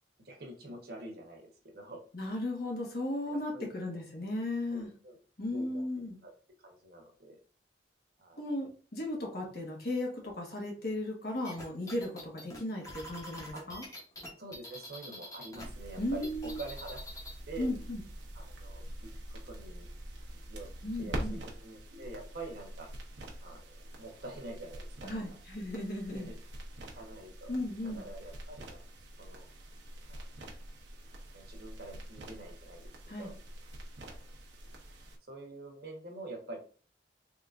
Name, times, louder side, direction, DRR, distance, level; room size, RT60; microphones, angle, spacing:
voice 1, 0.2-2.0 3.2-4.0 4.7-5.2 5.5-5.8 6.2-6.3 6.6-7.4 8.2-8.4 13.5-13.6 14.4-17.0 17.5-17.7 18.3-18.8 19.3-19.9 20.5-20.7 21.0-22.9 23.4-23.6 24.0-25.2 26.1-26.4 26.9-27.5 27.8-28.8 29.2-29.4 30.1-30.3 31.3-32.9 33.2-33.3 34.0-34.2 35.3-36.6, right 2 dB, 60° right, 2 dB, 1.1 m, -46 dB
voice 2, 2.1-4.9 5.4-6.2 8.4-13.8 16.0-16.6 17.6-18.0 20.8-21.4 25.0-26.3 27.5-28.1 33.1-33.3, left 1 dB, 60° left, 0 dB, 1.4 m, -36 dB
sound 1, 11.4-15.6 15.9-17.4, left 1 dB, 20° left, 1.1 m, -45 dB
sound 2, 15.6-35.2, right 1 dB, 80° right, 0.9 m, -45 dB
3.7 x 3.5 x 2.5 m, 0.39 s
head